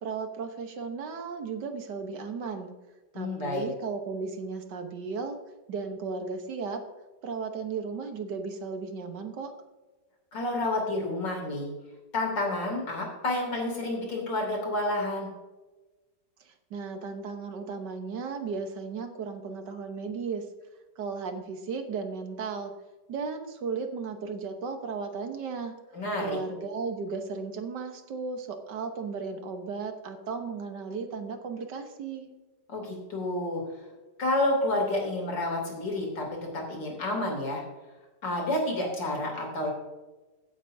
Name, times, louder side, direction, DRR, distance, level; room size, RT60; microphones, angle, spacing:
voice 1, 0.0-2.7 3.1-5.4 5.7-6.8 7.2-9.5 16.4-20.5 21.0-22.7 23.1-25.7 26.2-32.3, right 5 dB, 75° right, 6 dB, 1.8 m, -35 dB
voice 2, 3.1-3.6 10.3-11.7 12.1-15.3 25.9-26.4 32.7-33.6 34.2-36.3 36.5-37.6 38.2-39.7, left 2 dB, 90° left, 0 dB, 3.8 m, -29 dB
16.0 x 8.1 x 2.7 m, 1.2 s
omnidirectional pair, 1.9 m